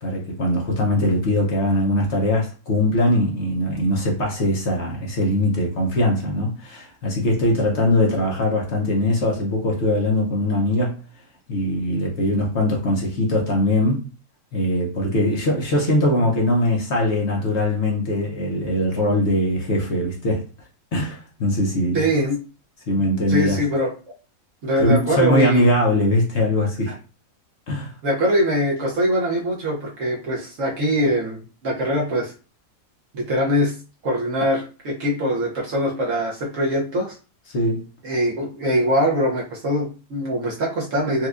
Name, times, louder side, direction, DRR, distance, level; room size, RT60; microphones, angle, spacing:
voice 1, 0.0-11.0 11.5-14.0 14.5-20.4 20.9-22.0 22.9-23.6 24.8-26.9 27.7-27.9 37.5-37.9, left 1 dB, 55° left, 0.8 m, -21 dB
voice 2, 21.9-22.4 23.0-23.9 24.6-25.6 26.9-27.0 28.0-32.3 33.1-33.7 34.0-37.2 38.0-41.3, equal, 55° right, 0.9 m, -22 dB
4.4 x 2.3 x 2.4 m
omnidirectional pair, 1.9 m